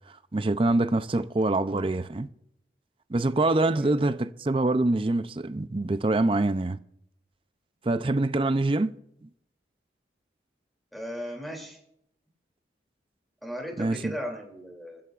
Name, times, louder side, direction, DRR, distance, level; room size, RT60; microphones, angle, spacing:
voice 1, 0.3-2.3 3.1-6.8 7.8-8.9 9.2-9.3 13.8-14.1, right 2 dB, 30° right, 0.5 m, -25 dB
voice 2, 10.9-11.8 13.4-15.0, equal, ahead, 2.8 m, -37 dB
28.0 x 15.5 x 2.5 m
head